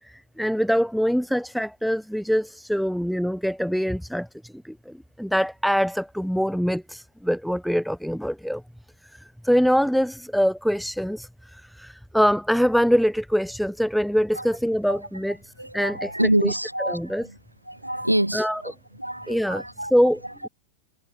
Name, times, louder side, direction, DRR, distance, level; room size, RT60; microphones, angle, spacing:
voice 1, 0.0-8.6 9.1-16.1 16.4-17.3 18.3-18.6 19.3-20.5, equal, ahead, 4.2 m, -24 dB
voice 2, 15.6-17.4 17.7-19.9, right 1 dB, 85° right, 6.0 m, -27 dB
figure-of-eight pair, 90°, 0 cm